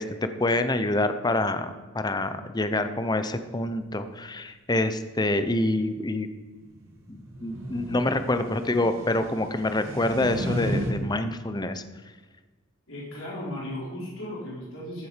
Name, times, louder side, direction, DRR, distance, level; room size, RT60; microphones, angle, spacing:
voice 1, 0.0-6.3 7.1-11.8, left 2 dB, 20° left, 10 dB, 0.7 m, -26 dB
sound 1, 6.6-10.9, equal, 75° right, 2.2 m, -34 dB
voice 2, 12.9-15.1, left 1 dB, 80° left, -5 dB, 4.4 m, -36 dB
14.5 x 7.5 x 5.1 m, 1.4 s
head